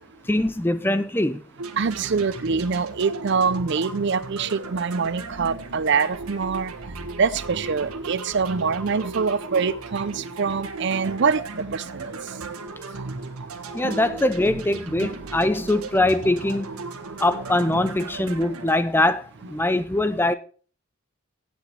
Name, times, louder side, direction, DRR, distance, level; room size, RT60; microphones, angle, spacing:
voice 1, 0.3-1.4 13.7-16.8 17.2-20.3, left 1 dB, 10° left, 0.5 m, -22 dB
sound 1, 1.6-18.8, right 3 dB, 85° right, 1.6 m, -36 dB
voice 2, 1.8-6.7 7.2-12.2 13.1-13.2 13.8-14.2 15.0-15.2, right 5 dB, 55° right, 0.5 m, -25 dB
16.5 x 8.4 x 3.3 m
head